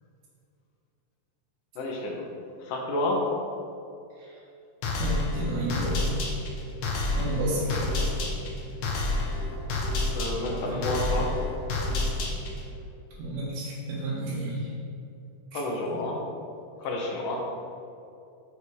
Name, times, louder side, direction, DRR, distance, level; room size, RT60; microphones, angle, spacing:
voice 1, 1.8-2.2 2.6-3.3 10.1-11.3 15.5-16.2 16.8-17.4, left 1 dB, 80° left, 0 dB, 2.7 m, -30 dB
sound 1, 4.8-12.7, left 2 dB, 65° left, 1.3 m, -29 dB
voice 2, 5.0-6.1 6.9-8.0 10.4-10.9 11.1-11.2 13.2-14.7 15.5-15.6, right 1 dB, 80° right, -8 dB, 3.0 m, -32 dB
7.1 x 6.7 x 4.6 m, 2.6 s
omnidirectional pair, 3.6 m